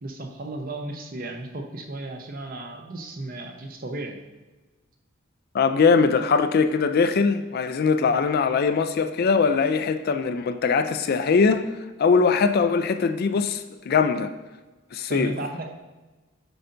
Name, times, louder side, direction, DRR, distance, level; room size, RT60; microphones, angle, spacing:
voice 1, 0.0-4.2 15.1-15.7, right 2 dB, 45° right, 0.7 m, -34 dB
voice 2, 5.5-14.3 14.9-15.3, left 5 dB, 45° left, 0.3 m, -21 dB
7.8 x 5.5 x 2.6 m
head